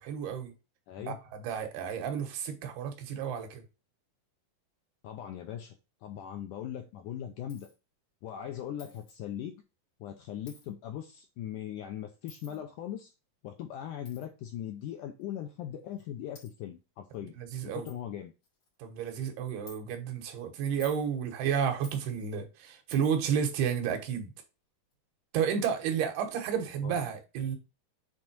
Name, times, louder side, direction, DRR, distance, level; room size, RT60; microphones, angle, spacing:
voice 1, 0.0-0.5 1.1-3.6 17.4-17.9 18.8-24.3 25.3-27.6, right 7 dB, 85° right, 3.3 m, -31 dB
voice 2, 0.9-1.2 5.0-5.8 6.0-7.7 8.2-9.6 10.0-13.1 13.4-17.3 17.6-18.3 26.8-27.0, left 10 dB, 80° left, 1.9 m, -40 dB
Coin (dropping), 7.5-7.8 8.8-9.2 10.5-10.7 12.3-12.6 14.1-14.3 15.2-15.3 16.0-16.1 16.4-16.5 17.1-17.2 17.5-17.6 17.9-18.0 18.4-18.8 19.7-19.8 20.6-21.1 21.8-22.1 22.9-23.3 24.9-25.0 25.6-25.8, left 4 dB, 45° left, 3.5 m, -52 dB
7.6 x 3.8 x 4.4 m
omnidirectional pair, 4.4 m